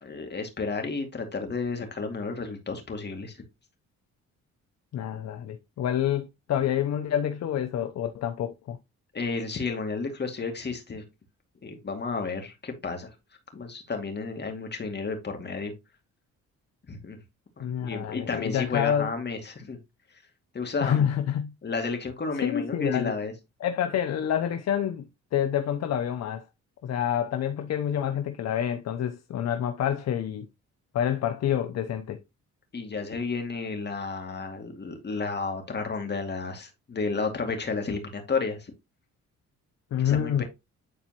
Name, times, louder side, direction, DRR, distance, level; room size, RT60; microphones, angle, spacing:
voice 1, 0.0-3.4 9.1-11.0 11.6-13.1 13.5-15.7 16.9-17.2 17.6-19.8 20.5-21.1 21.6-23.3 32.7-38.7 40.0-40.4, left 4 dB, 35° left, 2.3 m, -32 dB
voice 2, 4.9-8.8 17.6-19.1 20.8-21.5 22.4-23.1 23.6-26.4 26.8-30.5 30.9-32.2 39.9-40.4, left 9 dB, 60° left, 0.7 m, -27 dB
10.0 x 4.2 x 3.0 m
cardioid pair, 90°, 30 cm